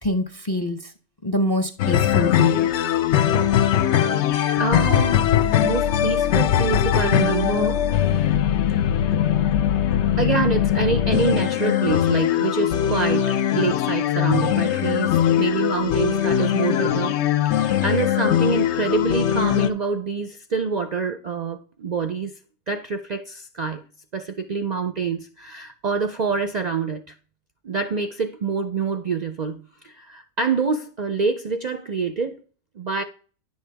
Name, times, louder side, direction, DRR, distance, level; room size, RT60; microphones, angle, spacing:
voice 1, 0.0-0.9 1.2-2.7, left 1 dB, 25° left, 0.6 m, -25 dB
sound 1, 1.8-19.7, left 10 dB, 70° left, 0.9 m, -21 dB
voice 2, 4.5-5.2 5.6-7.8 8.1-8.3 10.2-22.3 22.7-23.8 24.1-27.0 27.6-32.4 32.8-33.0, right 5 dB, 50° right, 0.5 m, -26 dB
10.5 x 6.7 x 3.4 m
omnidirectional pair, 1.3 m